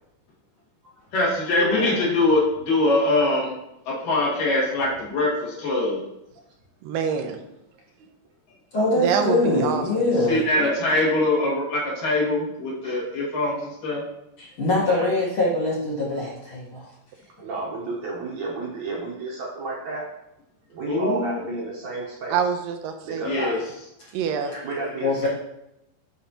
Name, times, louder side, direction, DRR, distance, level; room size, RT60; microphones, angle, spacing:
voice 1, 1.1-3.5 3.9-6.0 10.3-14.0 20.9-21.6 23.3-23.6, left 2 dB, 70° left, -5 dB, 3.4 m, -23 dB
voice 2, 1.6-2.1 12.8-13.3 14.9-15.1 17.4-20.1 20.7-22.4 23.1-23.5 24.6-25.3, right 3 dB, 65° right, -3 dB, 2.1 m, -32 dB
voice 3, 6.8-7.4 9.0-10.0 22.3-23.4 24.1-24.5, right 6 dB, 85° right, 5 dB, 2.3 m, -25 dB
voice 4, 8.7-10.4 14.4-16.9 24.5-24.6 25.0-25.3, left 2 dB, 50° left, -7 dB, 1.8 m, -23 dB
10.5 x 4.1 x 2.9 m, 0.86 s
omnidirectional pair, 4.0 m